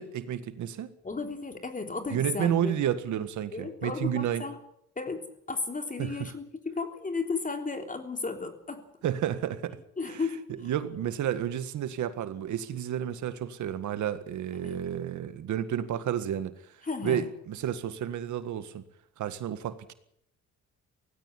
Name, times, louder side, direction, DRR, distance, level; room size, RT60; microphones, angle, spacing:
voice 1, 0.0-0.9 2.1-4.4 6.0-6.3 9.0-9.8 10.1-10.2 10.6-16.7 17.0-18.8 19.2-19.9, right 10 dB, 75° right, 1.8 m, -31 dB
voice 2, 1.0-2.7 3.5-4.6 4.9-8.8 10.0-10.4 14.6-14.8 16.8-17.2, left 4 dB, 25° left, 3.4 m, -34 dB
18.5 x 15.5 x 9.9 m
cardioid pair, 90°, 30 cm